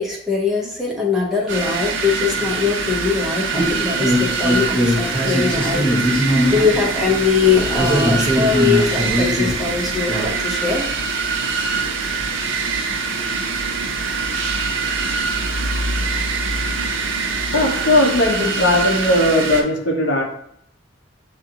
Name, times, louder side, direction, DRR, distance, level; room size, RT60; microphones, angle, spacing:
voice 1, 0.0-10.9, left 5 dB, ahead, -4 dB, 0.8 m, -21 dB
sound 1, 1.5-19.6, right 4 dB, 75° right, 0.6 m, -24 dB
sound 2, 3.5-10.3, equal, 25° left, 1.0 m, -21 dB
voice 2, 17.5-20.2, left 1 dB, 65° left, 0 dB, 0.8 m, -17 dB
6.4 x 2.5 x 2.9 m, 0.68 s
head